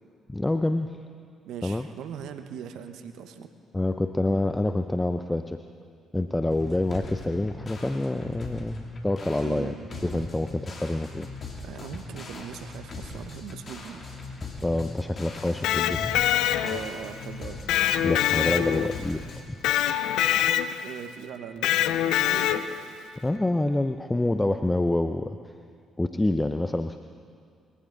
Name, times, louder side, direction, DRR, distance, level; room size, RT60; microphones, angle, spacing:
voice 1, 0.3-1.0 1.6-1.9 3.7-5.6 6.1-9.7 10.0-11.3 14.6-16.1 18.0-19.6 23.2-25.4 26.0-27.0, left 2 dB, 15° left, 8 dB, 0.7 m, -27 dB
voice 2, 1.4-3.5 9.4-10.3 11.6-14.0 16.6-17.6 20.8-22.7, right 8 dB, 70° right, 8 dB, 1.1 m, -40 dB
sound 1, 6.5-19.4, left 3 dB, 45° left, 2.9 m, -40 dB
Electric guitar, 15.5-17.0 17.7-19.1 19.6-20.9 21.6-22.9, left 12 dB, 75° left, 0.5 m, -24 dB
22.5 x 15.5 x 4.0 m, 2.3 s
hypercardioid pair, 45°, 0 cm